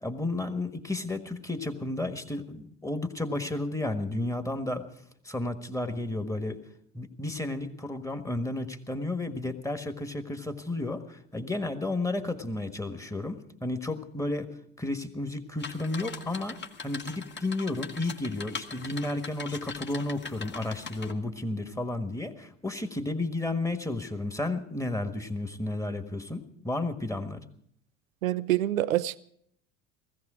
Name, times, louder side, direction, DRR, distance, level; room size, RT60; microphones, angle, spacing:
voice 1, 0.0-4.8 5.2-6.6 6.9-14.5 14.8-27.4, left 2 dB, 10° left, 8 dB, 1.5 m, -32 dB
sound 1, 15.6-21.1, left 5 dB, 25° left, 1.3 m, -41 dB
voice 2, 28.2-29.2, right 14 dB, 85° right, 17 dB, 0.5 m, -26 dB
17.0 x 15.0 x 5.0 m, 0.65 s
hypercardioid pair, 65°, 39 cm